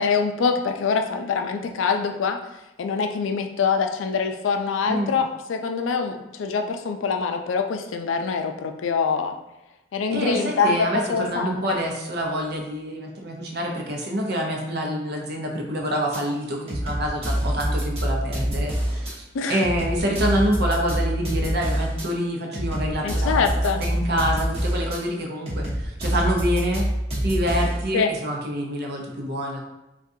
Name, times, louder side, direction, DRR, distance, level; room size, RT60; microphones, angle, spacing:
voice 1, 0.0-2.4 2.8-9.3 9.9-11.8 19.3-19.6 23.0-23.8 27.9-28.1, left 5 dB, 90° left, 6 dB, 0.4 m, -24 dB
voice 2, 10.1-23.4 23.8-26.8 27.2-29.6, equal, 60° right, 0 dB, 0.7 m, -27 dB
sound 1, 16.1-16.2 16.7-19.1 19.6-22.1 22.5-25.0 25.5-27.8, equal, 30° right, 0.9 m, -26 dB
3.6 x 2.4 x 2.7 m, 0.95 s
head